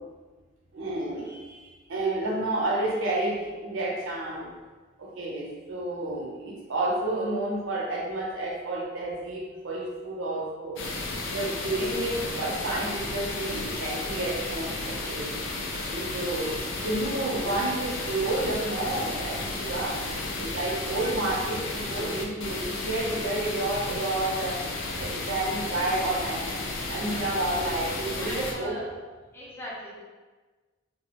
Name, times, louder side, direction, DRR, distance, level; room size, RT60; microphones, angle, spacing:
voice 1, 0.7-4.5 5.0-10.8 11.2-15.6 15.9-24.6 24.9-26.6 26.9-29.0, right 2 dB, 70° right, -3 dB, 0.6 m, -30 dB
sound 1, 10.8-28.5, left 2 dB, 65° left, 0.4 m, -33 dB
voice 2, 27.1-27.7 28.2-28.9 29.3-30.0, equal, 10° left, -7 dB, 0.6 m, -41 dB
2.2 x 2.0 x 2.8 m, 1.3 s
head